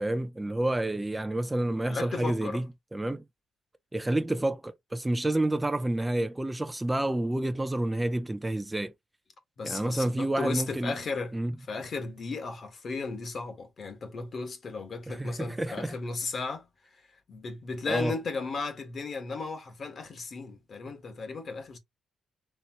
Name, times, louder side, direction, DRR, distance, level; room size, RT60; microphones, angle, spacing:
voice 1, 0.0-2.7 2.9-3.2 3.9-8.9 9.6-11.0 11.3-11.5 15.1-15.9 17.9-18.2, right 1 dB, 10° right, 0.5 m, -29 dB
voice 2, 1.9-2.6 9.6-11.3 11.7-16.7 17.3-21.8, left 4 dB, 45° left, 1.4 m, -35 dB
4.2 x 3.4 x 2.9 m
cardioid pair, 90°, 0 cm